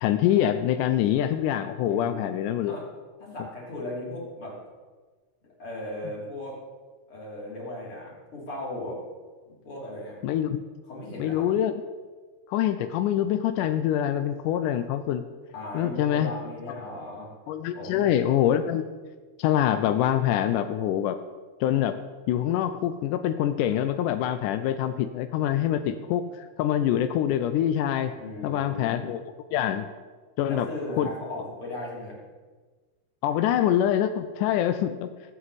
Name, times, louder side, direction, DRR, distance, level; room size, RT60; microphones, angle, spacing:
voice 1, 0.0-2.8 10.2-10.6 11.2-11.7 12.5-15.2 15.7-16.3 17.5-18.9 19.4-21.2 21.6-22.0 22.3-28.1 28.4-29.2 29.5-29.9 30.4-30.7 31.0-31.1 33.2-35.1, left 11 dB, 85° left, 9 dB, 2.1 m, -25 dB
voice 2, 1.9-2.3 2.6-2.9 3.2-4.6 5.6-6.6 7.1-9.0 9.5-10.2 10.9-11.5 15.5-17.3 17.7-18.1 28.2-29.1 30.4-32.2, left 1 dB, 45° left, -4 dB, 4.0 m, -37 dB
21.5 x 7.8 x 4.1 m, 1.4 s
omnidirectional pair, 3.6 m